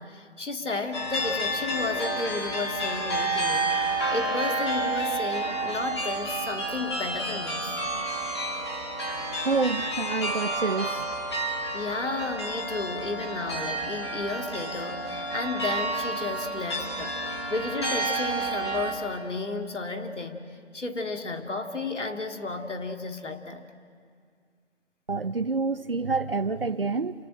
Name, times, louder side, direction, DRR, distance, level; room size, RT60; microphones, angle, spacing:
voice 1, 0.0-7.8 11.7-17.2 17.5-20.4 20.7-23.7, left 3 dB, 85° left, 2.6 m, -33 dB
sound 1, 0.9-18.9, right 2 dB, 25° left, 2.4 m, -30 dB
voice 2, 9.4-11.1 25.1-27.1, right 4 dB, 50° right, 0.8 m, -27 dB
28.0 x 23.5 x 7.8 m
figure-of-eight pair, 180°, 35 cm